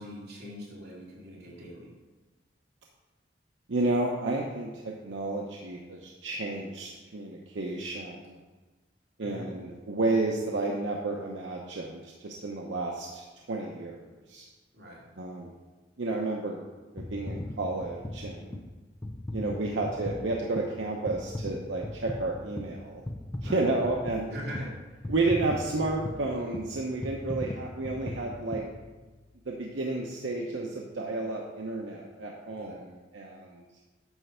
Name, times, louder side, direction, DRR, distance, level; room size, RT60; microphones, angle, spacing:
voice 1, 0.0-1.9 9.2-9.5 14.7-15.1 19.5-19.7 23.4-23.6 24.2-25.1 32.5-32.8, equal, 60° right, -6 dB, 2.8 m, -42 dB
voice 2, 3.7-8.4 9.2-14.0 14.3-14.5 15.2-15.5 16.0-16.6 16.9-18.6 19.3-23.0 23.4-24.3 25.1-28.6 29.5-32.9 33.1-33.6, right 2 dB, 85° right, -1 dB, 0.8 m, -31 dB
sound 1, 17.0-29.4 29.9-30.1, left 1 dB, 15° left, 0.4 m, -39 dB
9.3 x 3.3 x 6.7 m, 1.2 s
head